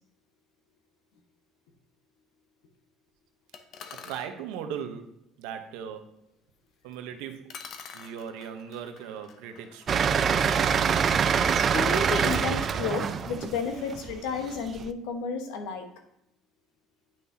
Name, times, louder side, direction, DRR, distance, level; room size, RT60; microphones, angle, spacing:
sound 1, 3.5-4.3 6.9-7.0 7.5-12.3, left 6 dB, 50° left, 0.7 m, -48 dB
voice 1, 3.9-6.2 6.8-7.6 7.9-10.1 12.7-12.9, right 8 dB, 85° right, 0.9 m, -39 dB
sound 2, 9.9-14.8, right 7 dB, 35° right, 0.4 m, -25 dB
voice 2, 11.4-15.9, left 5 dB, 85° left, 1.2 m, -32 dB
9.0 x 5.7 x 2.8 m
cardioid pair, 140°, 0 cm